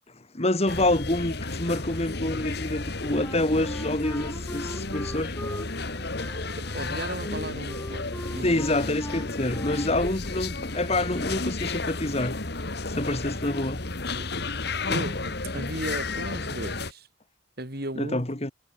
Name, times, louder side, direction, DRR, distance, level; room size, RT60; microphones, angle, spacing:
voice 1, 0.3-5.3 8.4-12.4 12.9-13.8 18.0-18.5, left 1 dB, 35° left, 2.0 m, -27 dB
sound 1, 0.7-16.9, left 3 dB, 55° left, 2.2 m, -32 dB
Wind instrument woodwind instrument, 3.2-10.0, left 1 dB, 10° left, 4.3 m, -40 dB
voice 2, 6.6-8.0 8.3-8.8 14.2-14.3 14.9-17.1 17.6-18.3, right 1 dB, 55° right, 7.5 m, -36 dB
head